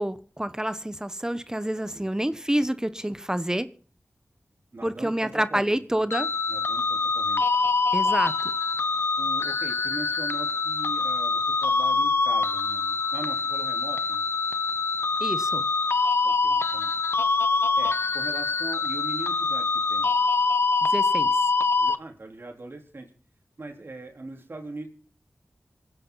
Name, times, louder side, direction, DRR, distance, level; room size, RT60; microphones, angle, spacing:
voice 1, 0.0-3.7 4.8-6.3 7.9-8.3 15.2-15.6 20.9-21.3, right 1 dB, 15° right, 1.1 m, -28 dB
voice 2, 4.7-6.1 6.5-7.4 8.0-8.2 9.2-14.2 16.2-16.9 17.8-20.1 21.7-23.1 23.6-24.9, right 2 dB, 60° right, 4.0 m, -40 dB
sound 1, 6.1-22.0, left 4 dB, 65° left, 0.8 m, -25 dB
26.5 x 10.5 x 4.1 m
cardioid pair, 45°, 4 cm